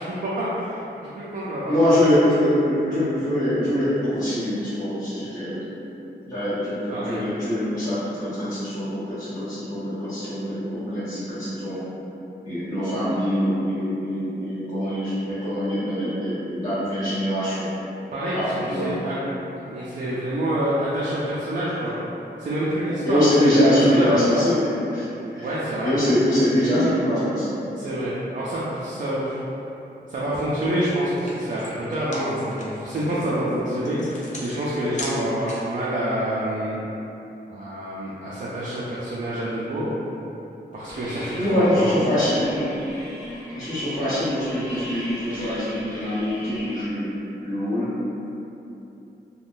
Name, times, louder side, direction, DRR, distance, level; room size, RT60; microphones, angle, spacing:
voice 1, 0.0-2.1 6.9-7.2 18.1-19.2 19.7-21.9 22.4-23.2 23.8-24.2 25.4-25.9 27.8-29.4 30.1-36.8 37.5-39.9 40.7-41.9, right 1 dB, 45° right, -8 dB, 0.4 m, -27 dB
voice 2, 1.6-5.6 6.3-11.8 12.4-17.7 18.3-19.0 19.6-19.7 22.8-27.6 33.2-33.8 41.3-42.5 43.5-47.1 47.4-47.9, left 1 dB, 20° left, -15 dB, 0.9 m, -23 dB
sound 1, 30.7-30.8 31.0-35.8, left 2 dB, 40° left, 0.4 m, -39 dB
sound 2, 40.9-46.9, equal, 20° right, 1.0 m, -36 dB
3.3 x 2.2 x 2.5 m, 3.0 s
wide cardioid pair, 155°, 18 cm